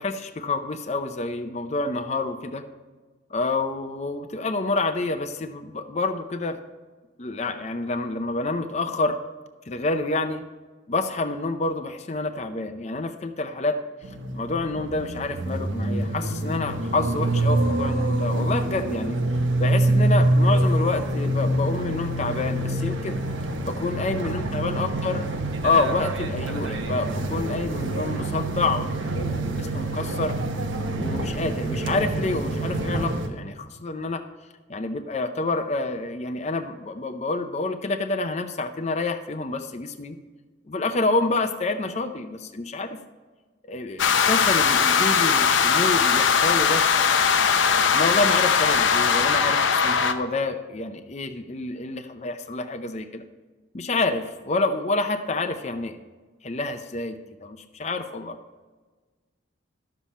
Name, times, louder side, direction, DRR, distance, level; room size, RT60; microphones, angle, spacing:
voice 1, 0.0-2.6 3.3-6.6 7.2-9.2 9.7-10.4 10.9-13.8 14.3-19.2 19.6-23.2 23.6-25.2 25.6-30.4 31.0-34.2 34.7-40.2 40.7-43.0 43.7-46.8 47.9-53.2 53.7-56.0 56.4-58.4, left 3 dB, 35° left, 7 dB, 0.6 m, -28 dB
sound 1, 14.0-33.3, right 1 dB, 90° right, 1.1 m, -26 dB
sound 2, 44.0-50.1, left 6 dB, 80° left, 0.7 m, -20 dB
12.0 x 7.2 x 4.3 m, 1.3 s
head